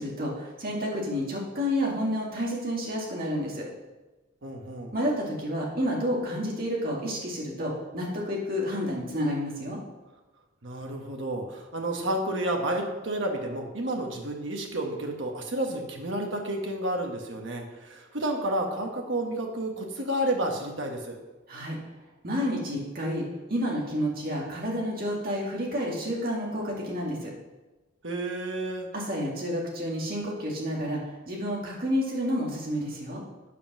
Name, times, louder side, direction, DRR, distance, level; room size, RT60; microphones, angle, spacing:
voice 1, 0.0-3.7 4.9-9.8 21.5-21.8 22.2-27.3 28.9-33.2, equal, 50° right, -3 dB, 2.3 m, -30 dB
voice 2, 4.4-4.9 10.6-21.2 28.0-28.9, right 1 dB, 65° right, 2 dB, 1.5 m, -31 dB
8.3 x 5.5 x 6.2 m, 1.1 s
head